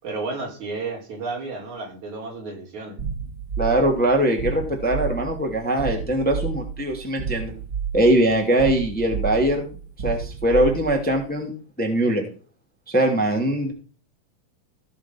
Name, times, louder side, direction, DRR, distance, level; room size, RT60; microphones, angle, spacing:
voice 1, 0.0-3.0, right 3 dB, 65° right, 1 dB, 4.9 m, -32 dB
sound 1, 3.0-11.2, right 7 dB, 35° right, 1.9 m, -31 dB
voice 2, 3.6-7.5 7.9-9.7 10.0-11.5 11.8-12.2 12.9-13.7, right 1 dB, 5° left, 1 dB, 2.4 m, -21 dB
17.0 x 6.2 x 6.0 m, 0.37 s
omnidirectional pair, 3.6 m